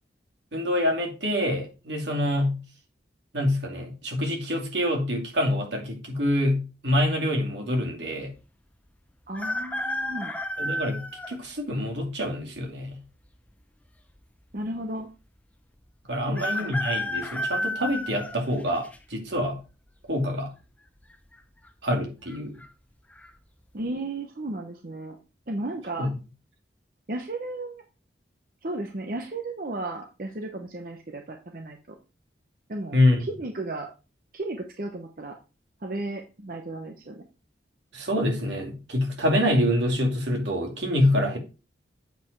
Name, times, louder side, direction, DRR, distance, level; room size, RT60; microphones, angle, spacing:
voice 1, 0.5-2.6 3.3-8.3 10.6-13.0 16.1-19.6 20.1-20.5 21.8-22.5 26.0-26.1 32.9-33.2 37.9-41.4, left 1 dB, 75° right, 2 dB, 2.4 m, -26 dB
sound 1, 9.3-11.4 12.0-12.1 13.2-13.9 14.2-14.3 14.4-14.5 16.4-19.0 19.5-19.9 21.0-21.4 21.6-21.7 22.3-22.7 23.1-23.3, left 1 dB, 10° left, 0.6 m, -31 dB
voice 2, 9.3-10.4 14.5-15.1 16.3-16.8 23.7-25.2 25.5-26.1 27.1-27.8 28.6-31.8 32.7-33.9 34.3-35.3 35.8-37.2, right 2 dB, 50° right, 4 dB, 0.8 m, -34 dB
7.9 x 5.0 x 4.6 m, 0.31 s
head